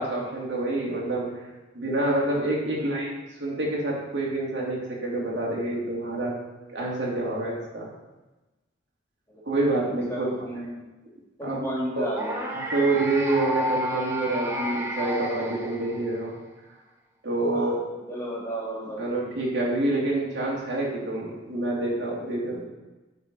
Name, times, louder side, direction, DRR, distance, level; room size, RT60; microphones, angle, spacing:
voice 1, 0.0-1.4 1.7-3.1 3.4-6.4 6.7-7.9 9.4-10.3 11.4-11.6 12.0-12.1 12.5-16.3 17.2-17.8 19.0-22.6, right 2 dB, 70° right, -4 dB, 2.4 m, -27 dB
voice 2, 2.7-3.1 9.3-10.6 11.4-12.4 17.5-19.0, equal, 15° left, -6 dB, 2.5 m, -34 dB
sound 1, 12.2-16.3, equal, 15° right, 0.8 m, -31 dB
9.2 x 4.5 x 5.1 m, 1.1 s
head